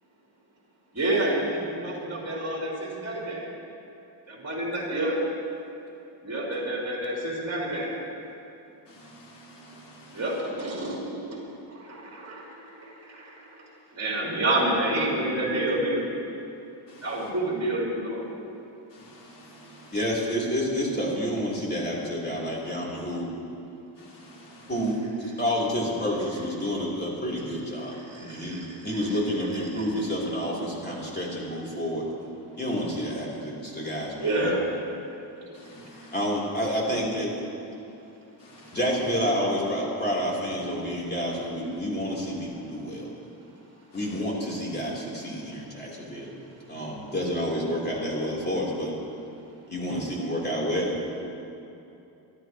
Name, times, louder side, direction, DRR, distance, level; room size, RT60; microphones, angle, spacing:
voice 1, 0.9-3.5 4.3-5.2 6.2-7.9 10.1-13.5 13.9-16.1 17.0-18.3 28.1-28.9 34.2-34.6 35.4-35.5, right 1 dB, 35° right, -5 dB, 3.8 m, -29 dB
voice 2, 8.9-10.4 16.9-17.3 18.9-20.2 23.9-25.0 35.5-36.3 38.4-39.0 43.9-44.2 49.8-50.2, equal, 75° left, -6 dB, 4.1 m, -48 dB
voice 3, 19.9-23.3 24.7-32.0 32.6-34.5 36.1-37.3 38.7-43.1 43.9-46.4 46.7-48.9 49.7-51.0, equal, 25° left, -4 dB, 3.6 m, -29 dB
25.0 x 12.5 x 3.1 m, 2.7 s
cardioid pair, 115°, 42 cm